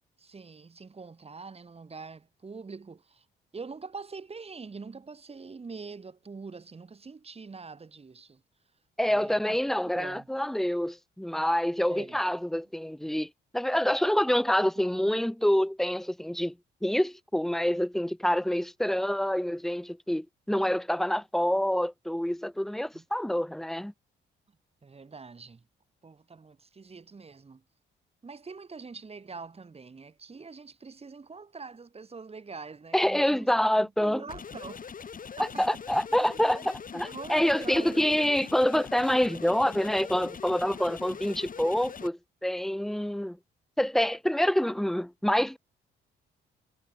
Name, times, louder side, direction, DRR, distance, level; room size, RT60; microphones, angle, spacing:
voice 1, 0.2-3.3 3.5-8.4 9.0-9.6 10.0-10.3 11.9-12.2 14.8-15.2 22.9-23.0 24.8-25.6 26.0-27.6 28.2-33.5 33.8-34.9 35.4-35.6 36.1-36.7 37.1-38.0, right 4 dB, 30° right, 5.3 m, -44 dB
voice 2, 9.0-16.5 16.8-23.9 32.9-34.2 35.4-43.4 43.8-45.6, equal, ahead, 1.1 m, -27 dB
sound 1, 34.3-42.1, left 6 dB, 45° left, 6.5 m, -42 dB
cardioid pair, 90°, 20 cm